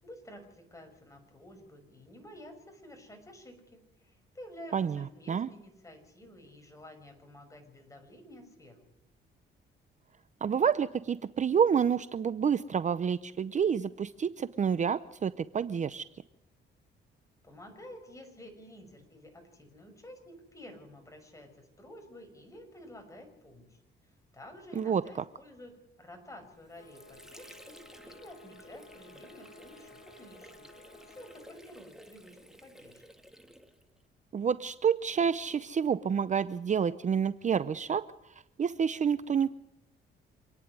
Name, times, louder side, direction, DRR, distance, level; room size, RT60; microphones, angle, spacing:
voice 1, 0.0-8.8 17.4-23.8 24.3-30.7 31.0-33.0, left 1 dB, 15° left, 4 dB, 6.1 m, -51 dB
voice 2, 4.7-5.0 5.3-5.5 10.4-16.0 24.8-25.0 34.3-38.0 38.6-39.5, right 7 dB, 35° right, 15 dB, 0.6 m, -28 dB
Water / Sink (filling or washing), 26.4-34.1, equal, ahead, 1.9 m, -54 dB
sound 1, 26.7-31.6, left 1 dB, 75° left, 2.5 m, -56 dB
27.0 x 10.0 x 9.5 m, 0.88 s
cardioid pair, 90°, 20 cm